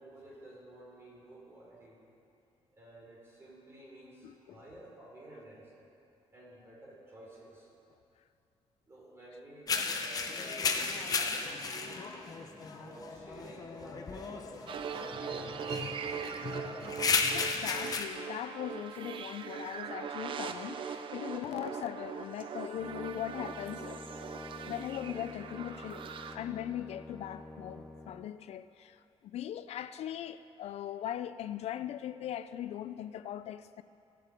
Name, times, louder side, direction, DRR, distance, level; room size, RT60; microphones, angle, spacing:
voice 1, 0.0-2.0 2.7-5.7 6.3-7.7 8.9-12.1 12.7-14.5 14.8-16.5, right 1 dB, 25° right, -5 dB, 3.4 m, -52 dB
voice 2, 4.2-4.6 17.1-24.1 24.5-26.0 26.3-33.8, left 11 dB, 70° left, 13 dB, 0.4 m, -40 dB
sound 1, 9.7-18.0, left 4 dB, 35° left, 0.8 m, -34 dB
sound 2, 14.7-26.4, right 6 dB, 50° right, 0.5 m, -41 dB
Brass instrument, 22.8-28.3, left 1 dB, 5° left, 0.6 m, -48 dB
17.0 x 8.4 x 5.2 m, 2.7 s
wide cardioid pair, 170°, 11 cm